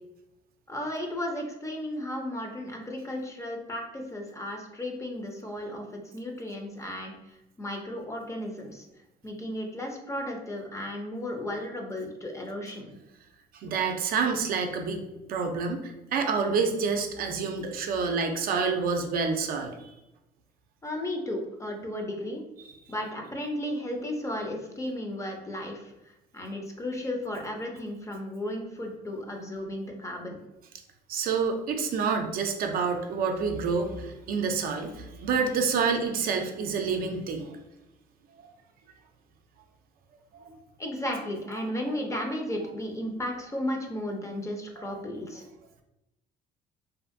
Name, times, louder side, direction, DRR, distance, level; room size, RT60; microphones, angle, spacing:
voice 1, 0.7-7.1 7.6-8.9 9.2-13.0 20.8-22.4 22.9-25.9 26.3-30.4 40.8-45.4, left 1 dB, 15° left, 2 dB, 0.5 m, -34 dB
voice 2, 13.5-19.9 31.1-37.6 38.4-38.5 40.3-40.5 44.8-44.9, right 5 dB, 60° right, 4 dB, 0.4 m, -28 dB
2.5 x 2.4 x 2.5 m, 0.94 s
cardioid pair, 110°, 17 cm